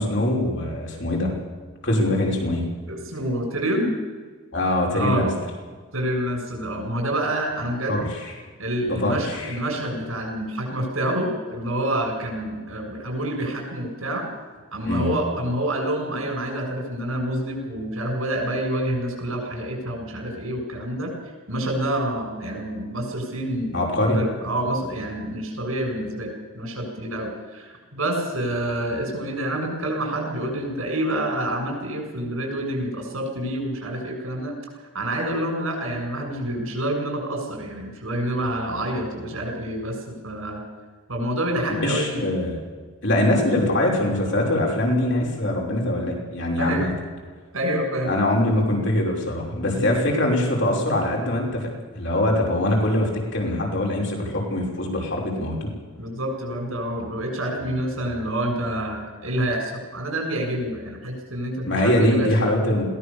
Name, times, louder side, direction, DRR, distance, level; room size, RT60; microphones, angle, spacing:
voice 1, 0.0-1.3 1.8-2.6 4.5-5.3 7.9-8.0 8.9-9.5 14.8-15.1 23.7-24.2 41.8-42.6 43.0-46.9 48.0-51.7 51.9-55.7 61.7-62.8, left 1 dB, 60° left, -1 dB, 5.9 m, -23 dB
voice 2, 2.9-4.0 4.9-5.3 5.9-8.0 8.6-14.3 14.7-21.1 21.5-34.5 34.9-40.6 41.1-42.2 46.6-46.8 47.5-48.1 49.7-49.9 56.0-62.3, right 1 dB, 85° right, 2 dB, 7.2 m, -27 dB
21.5 x 17.5 x 7.1 m, 1.4 s
head